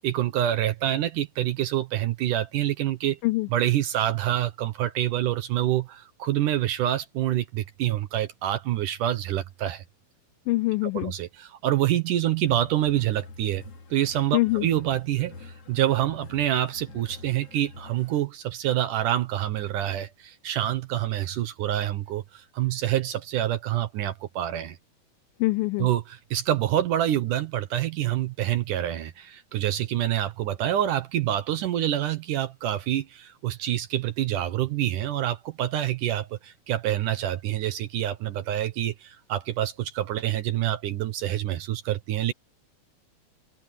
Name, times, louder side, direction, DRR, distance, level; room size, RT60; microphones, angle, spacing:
voice 1, 0.0-3.2 3.5-9.8 10.8-13.6 13.9-24.8 25.8-42.3, right 12 dB, 70° right, 2.2 m, -27 dB
voice 2, 10.5-11.1 14.3-14.7 25.4-25.9, left 20 dB, 80° left, 2.1 m, -24 dB
sound 1, 12.4-18.2, left 3 dB, 45° left, 2.8 m, -46 dB
open air
omnidirectional pair, 4.4 m